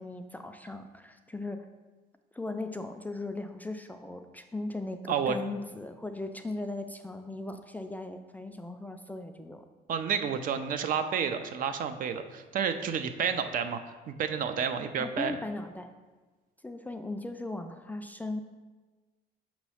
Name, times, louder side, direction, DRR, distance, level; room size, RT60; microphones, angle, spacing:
voice 1, 0.0-1.7 2.3-9.7 15.0-15.9 16.6-18.4, left 2 dB, 10° left, 6 dB, 0.3 m, -38 dB
voice 2, 9.9-13.8 14.1-15.4, right 7 dB, 55° right, 9 dB, 0.5 m, -30 dB
6.2 x 3.0 x 5.6 m, 1.3 s
cardioid pair, 110°, 17 cm